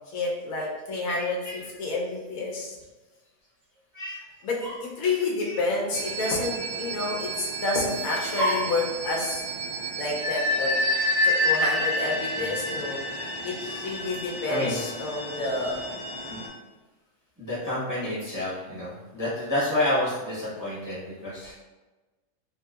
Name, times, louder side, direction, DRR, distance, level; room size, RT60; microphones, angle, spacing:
voice 1, 0.1-2.8 4.4-9.4 10.0-10.7 11.2-13.0 13.4-13.5 13.8-15.8, left 2 dB, 80° left, -3 dB, 1.1 m, -29 dB
voice 2, 1.2-1.6 3.9-4.2 4.6-4.8 5.4-5.5 8.4-8.7 10.9-11.3 12.4-12.5 13.1-13.9 14.5-14.8 16.3-16.4 17.4-21.5, left 1 dB, 20° right, -9 dB, 0.7 m, -30 dB
sound 1, 5.9-16.5, left 1 dB, 55° right, 0.5 m, -29 dB
3.1 x 2.7 x 2.3 m, 1.2 s
omnidirectional pair, 1.5 m